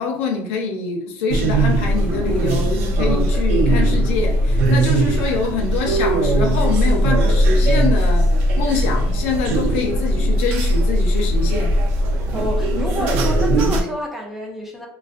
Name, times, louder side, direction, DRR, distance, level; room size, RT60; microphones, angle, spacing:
voice 1, 0.0-8.3 8.6-11.7, left 4 dB, 80° left, 2 dB, 0.6 m, -25 dB
sound 1, 1.3-13.8, right 1 dB, 80° right, 0.4 m, -18 dB
voice 2, 12.3-14.9, equal, 5° right, -1 dB, 0.3 m, -29 dB
2.4 x 2.2 x 2.3 m, 0.69 s
cardioid pair, 170°, 7 cm